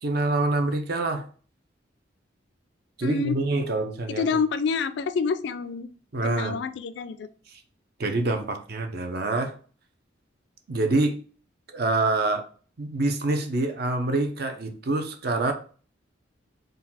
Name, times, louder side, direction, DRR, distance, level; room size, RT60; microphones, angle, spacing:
voice 1, 0.0-1.3 3.0-4.2 6.1-6.6 7.5-7.6 8.0-9.5 10.7-11.2 11.7-12.4 12.8-15.5, right 2 dB, 55° right, 6 dB, 0.6 m, -26 dB
voice 2, 3.0-3.3 4.1-5.9 6.2-7.3, left 5 dB, 60° left, 12 dB, 0.3 m, -27 dB
3.9 x 2.3 x 4.1 m, 0.40 s
head